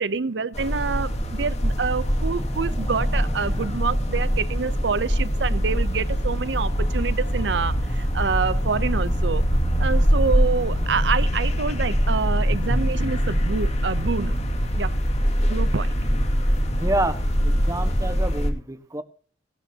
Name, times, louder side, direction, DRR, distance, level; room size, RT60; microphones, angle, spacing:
voice 1, 0.0-9.4 9.8-14.3 14.7-14.9 15.5-15.9, right 5 dB, 70° right, 0.6 m, -27 dB
sound 1, 0.5-18.5, equal, 40° left, 2.5 m, -23 dB
sound 2, 1.6-12.8, equal, 20° left, 1.4 m, -37 dB
voice 2, 16.8-19.0, right 1 dB, 20° right, 1.2 m, -28 dB
18.0 x 12.5 x 2.8 m
head